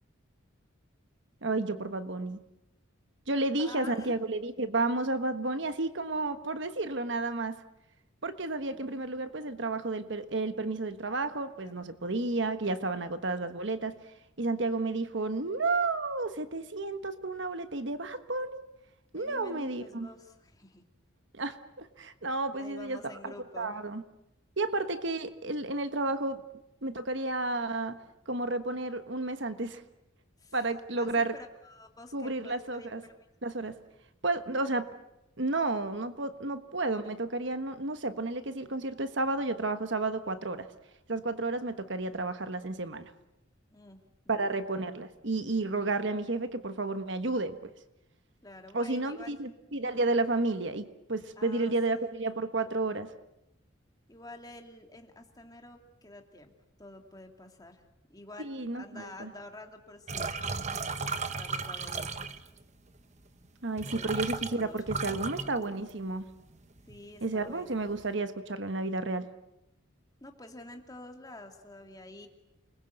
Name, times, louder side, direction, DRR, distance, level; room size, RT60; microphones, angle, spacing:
voice 1, 1.4-2.4 3.3-7.6 8.2-13.9 14.4-18.6 19.1-20.1 21.3-23.0 23.2-24.0 24.6-26.4 26.8-28.0 28.3-29.8 30.5-31.3 32.1-33.0 33.4-33.7 34.2-34.9 35.4-40.7 41.1-43.0 44.3-47.5 48.7-53.1 58.4-59.3 63.6-66.2 67.2-69.3, right 2 dB, 60° right, 10 dB, 1.4 m, -31 dB
voice 2, 3.6-4.1 11.6-11.9 19.1-20.8 22.6-23.8 30.4-30.5 31.0-33.1 43.7-44.0 44.3-44.6 48.4-49.4 51.4-52.1 54.1-56.5 56.8-57.8 58.1-60.8 61.1-62.4 63.8-65.9 66.9-67.8 70.2-72.3, left 2 dB, 20° left, 4 dB, 2.6 m, -49 dB
sound 1, 60.1-62.6 63.4-63.5 63.8-66.2 66.5-67.0 67.3-68.0, right 4 dB, 35° right, 1.1 m, -35 dB
29.0 x 21.0 x 8.0 m, 0.88 s
head